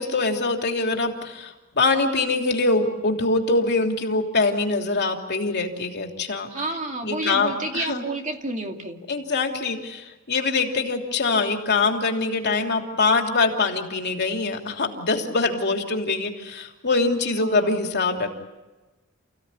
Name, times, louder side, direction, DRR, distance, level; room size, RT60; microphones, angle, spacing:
voice 1, 0.0-6.7 7.0-8.0 9.1-18.3, left 3 dB, 55° left, 2 dB, 3.1 m, -24 dB
voice 2, 6.5-9.0 17.4-17.7, right 2 dB, 35° right, 3 dB, 2.5 m, -30 dB
29.5 x 16.5 x 9.8 m, 1.1 s
head